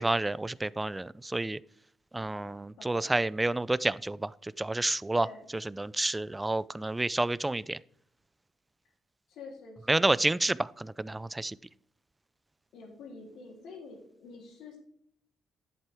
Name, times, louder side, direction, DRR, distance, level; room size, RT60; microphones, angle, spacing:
voice 1, 0.0-1.6 2.1-4.3 4.6-5.3 5.8-7.8 9.9-11.6, right 2 dB, 15° right, 20 dB, 0.3 m, -29 dB
voice 2, 2.8-3.1 5.1-5.5 9.3-10.1 12.7-14.8, left 3 dB, 80° left, 0 dB, 3.2 m, -47 dB
11.0 x 7.5 x 3.5 m, 0.67 s
cardioid pair, 90°, 0 cm